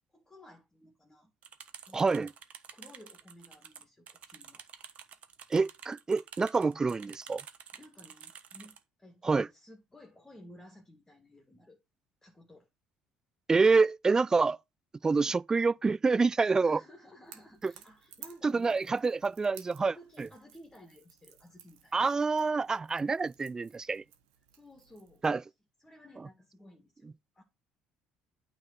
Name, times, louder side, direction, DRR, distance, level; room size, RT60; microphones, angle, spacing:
voice 1, 0.1-1.3 1.9-2.3 2.7-4.6 7.7-11.8 12.2-12.7 15.2-15.4 16.6-19.0 19.8-22.0 24.5-25.5 25.8-27.4, left 1 dB, 15° left, 2.2 m, -55 dB
sound 1, 1.4-8.8, right 8 dB, 50° right, 1.2 m, -50 dB
voice 2, 1.9-2.3 5.5-7.4 9.2-9.5 13.5-14.6 15.0-16.8 17.6-17.7 18.4-20.3 21.9-24.0 25.2-25.4, right 4 dB, 20° right, 0.3 m, -27 dB
Crackle / Crack, 17.2-25.4, right 10 dB, 80° right, 1.5 m, -56 dB
8.8 x 3.8 x 5.5 m
hypercardioid pair, 70°, 3 cm